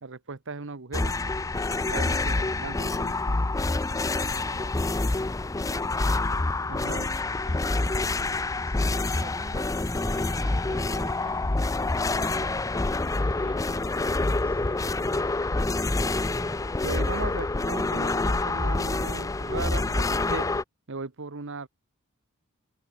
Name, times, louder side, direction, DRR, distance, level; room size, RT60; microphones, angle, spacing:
voice 1, 0.0-1.1 1.9-3.1 6.7-7.1 16.8-20.5 20.9-21.7, right 4 dB, 60° right, 1.0 m, -37 dB
sound 1, 0.9-20.6, left 2 dB, 15° left, 0.4 m, -27 dB
voice 2, 3.9-5.2 5.6-5.8 7.2-9.7 10.2-11.4 11.8-13.8 14.1-14.7, right 1 dB, 30° right, 6.2 m, -47 dB
sound 2, 9.4-16.6, equal, 5° right, 1.5 m, -41 dB
open air
head